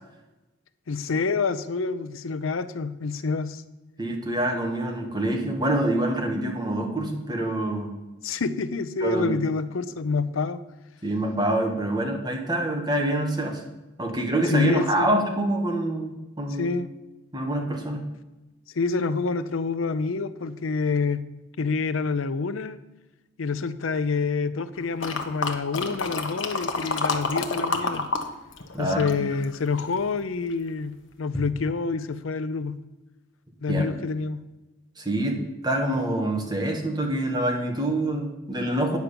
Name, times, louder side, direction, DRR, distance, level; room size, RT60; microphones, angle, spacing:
voice 1, 0.9-3.6 8.2-10.6 14.5-15.1 16.6-16.9 18.7-21.2 21.6-22.8 23.4-28.1 28.8-32.8 33.6-34.4, left 4 dB, 90° left, 0.6 m, -27 dB
voice 2, 4.0-7.9 9.0-9.3 11.0-13.6 14.0-16.7 17.3-18.0 28.7-29.2 33.7-33.9 35.0-35.4 35.6-39.0, right 1 dB, 20° right, 1.5 m, -26 dB
sound 1, 25.0-28.3 28.5-30.0 30.5-30.6, left 3 dB, 65° left, 1.0 m, -28 dB
9.4 x 5.9 x 6.8 m
head